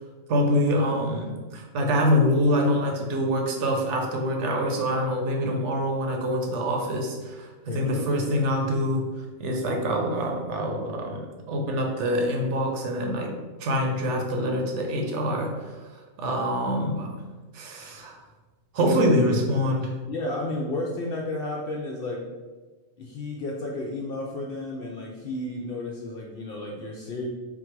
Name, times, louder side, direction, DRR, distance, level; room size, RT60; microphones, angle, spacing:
voice 1, 0.3-9.1 9.4-13.3 13.6-15.8 16.2-17.1 17.5-18.2 18.7-19.9, equal, 65° right, 2 dB, 1.0 m, -25 dB
voice 2, 7.7-8.5 18.8-19.3 20.1-22.2 23.0-27.3, left 2 dB, 65° left, -1 dB, 0.6 m, -32 dB
3.8 x 2.4 x 4.4 m, 1.3 s
omnidirectional pair, 1.4 m